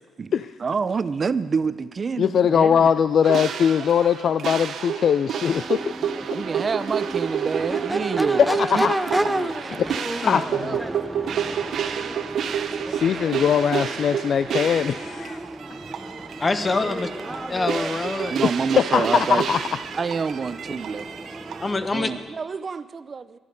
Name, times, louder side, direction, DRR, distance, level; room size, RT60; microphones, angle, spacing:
voice 1, 0.6-2.9 6.3-8.9 9.1-9.6 10.3-11.1 15.8-15.9 18.3-19.4 19.9-21.1 21.9-23.4, right 5 dB, 40° right, 14 dB, 0.6 m, -27 dB
voice 2, 2.2-5.8 8.6-8.9 9.7-10.8 12.9-15.4 18.9-19.6, left 7 dB, 60° left, 13 dB, 0.4 m, -21 dB
sound 1, 3.2-21.7, right 8 dB, 65° right, 0.9 m, -30 dB
Crowd / Race car auto racing / Accelerating revving vroom, 5.3-22.4, right 1 dB, 5° right, 0.8 m, -32 dB
voice 3, 16.4-17.1 17.5-18.4 21.6-22.1, left 3 dB, 30° left, 9 dB, 1.3 m, -25 dB
19.0 x 12.5 x 5.2 m, 1.3 s
cardioid pair, 90°, 0 cm